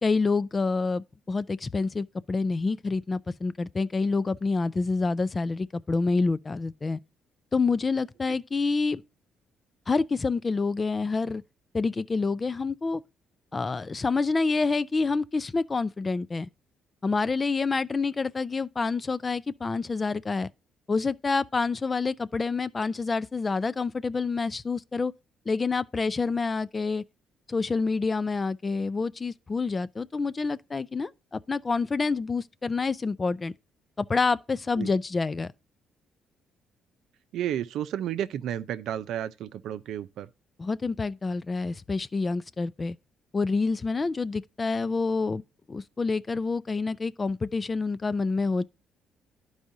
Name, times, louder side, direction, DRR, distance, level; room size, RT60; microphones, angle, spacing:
voice 1, 0.0-7.0 7.5-9.0 9.9-11.4 11.7-13.0 13.5-16.5 17.0-20.5 20.9-25.1 25.5-27.0 27.5-33.5 34.0-35.5 40.6-43.0 43.3-45.4 45.7-48.6, left 4 dB, 25° left, 0.4 m, -27 dB
voice 2, 37.3-40.3, right 10 dB, 80° right, 0.6 m, -32 dB
11.5 x 4.7 x 2.6 m
cardioid pair, 120°, 0 cm